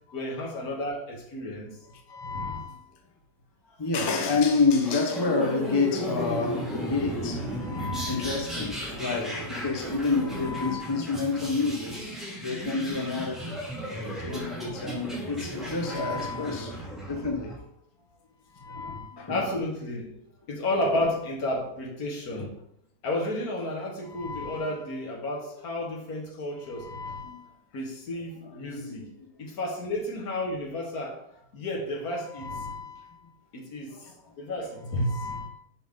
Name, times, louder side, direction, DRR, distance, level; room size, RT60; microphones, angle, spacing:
voice 1, 0.1-1.7 19.3-20.2 20.5-22.6 23.0-26.9 27.7-29.1 29.4-31.2 31.5-32.5 33.5-34.0 34.4-35.2, left 1 dB, 70° left, 1.8 m, -31 dB
voice 2, 2.1-2.8 3.8-12.0 12.4-13.5 13.9-16.8 17.1-17.6 18.6-19.4 20.9-21.0 24.1-24.7 26.7-27.4 28.3-29.1 32.3-33.1 33.9-34.1 35.0-35.5, left 4 dB, 25° left, 0.5 m, -29 dB
sound 1, 4.8-17.6, right 1 dB, ahead, 1.6 m, -35 dB
5.8 x 5.5 x 3.6 m
omnidirectional pair, 1.7 m